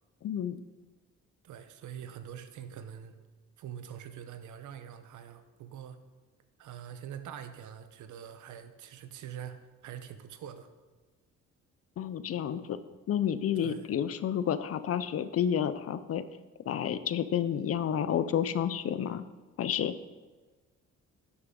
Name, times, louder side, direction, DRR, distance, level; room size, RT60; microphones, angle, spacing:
voice 1, 0.2-0.6 12.0-12.8 13.1-16.2 16.7-19.2 19.6-19.9, left 9 dB, 50° left, 14 dB, 0.6 m, -30 dB
voice 2, 1.4-3.2 3.6-6.0 6.6-10.7 13.6-13.9, right 9 dB, 75° right, 10 dB, 0.8 m, -44 dB
11.0 x 6.3 x 3.8 m, 1.3 s
cardioid pair, 90°, 30 cm